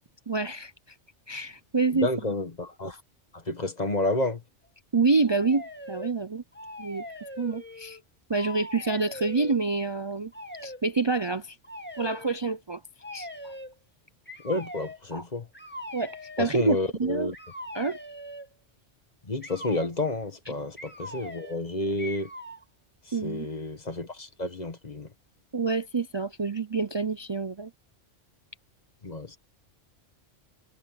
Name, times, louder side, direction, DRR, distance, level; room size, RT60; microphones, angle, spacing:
voice 1, 0.3-0.7 1.3-2.1 4.9-6.4 6.8-7.0 7.4-8.0 8.3-10.3 10.6-11.6 12.0-12.8 13.1-13.3 15.1-15.2 15.9-17.3 17.7-18.0 23.1-23.5 25.5-27.7, right 4 dB, 40° right, 0.4 m, -27 dB
voice 2, 1.9-3.0 3.3-4.4 14.4-15.5 16.4-17.3 19.2-22.3 23.1-25.1 29.0-29.4, left 2 dB, 35° left, 1.7 m, -30 dB
sound 1, 5.2-6.1 6.5-8.0 8.3-9.6 10.3-10.8 11.6-12.3 13.0-13.7 14.3-15.0 15.5-16.5 17.3-18.5 19.4-19.9 20.8-21.6 22.0-22.6, left 1 dB, 10° left, 1.8 m, -41 dB
omnidirectional pair, 1.2 m